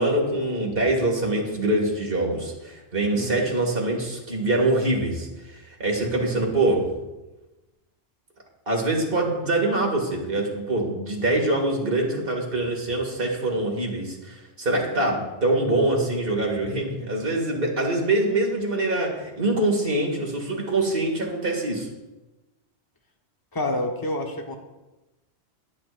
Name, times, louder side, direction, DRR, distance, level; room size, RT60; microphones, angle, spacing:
voice 1, 0.0-6.9 8.7-21.9, right 2 dB, 55° right, 0 dB, 2.5 m, -24 dB
voice 2, 3.1-3.5 23.5-24.6, left 1 dB, 20° left, 2 dB, 1.2 m, -28 dB
21.0 x 8.6 x 2.6 m, 1.1 s
omnidirectional pair, 1.1 m